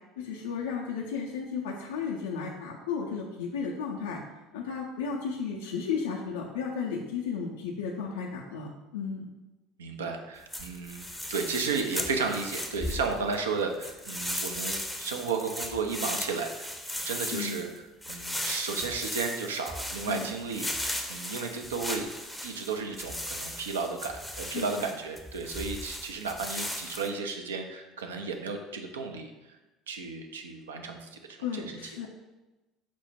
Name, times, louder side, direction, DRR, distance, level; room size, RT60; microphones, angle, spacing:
voice 1, 0.2-9.3 17.3-17.6 20.1-20.3 24.4-24.9 31.4-32.1, left 6 dB, 75° left, -2 dB, 0.4 m, -34 dB
voice 2, 9.8-16.7 17.0-17.7 18.1-22.1 22.4-29.3 29.9-31.7, right 4 dB, 80° right, 4 dB, 0.4 m, -33 dB
sound 1, 10.5-13.4 13.8-27.1, left 1 dB, ahead, 0.6 m, -37 dB
4.4 x 2.0 x 4.3 m, 1.1 s
figure-of-eight pair, 65°, 0 cm